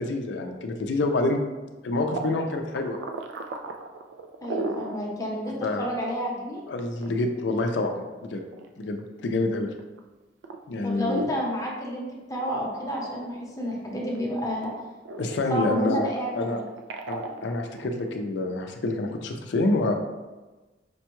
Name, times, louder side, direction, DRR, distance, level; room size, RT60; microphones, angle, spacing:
voice 1, 0.0-1.4 1.8-3.0 5.6-5.9 6.7-8.4 8.8-9.7 10.7-11.3 15.2-16.1 16.4-16.6 17.1-19.9, left 2 dB, 75° left, 4 dB, 0.4 m, -27 dB
sound 1, 2.1-5.1 5.5-5.6 5.9-6.0 6.8-9.1 9.6-10.0 10.4-10.6 11.1-12.1 12.4-14.2 14.6-18.1, right 3 dB, 85° right, 0.3 m, -37 dB
voice 2, 4.4-6.6 10.8-12.0 12.3-14.7 15.5-16.6, equal, 20° left, -3 dB, 0.7 m, -30 dB
5.2 x 2.2 x 2.9 m, 1.2 s
head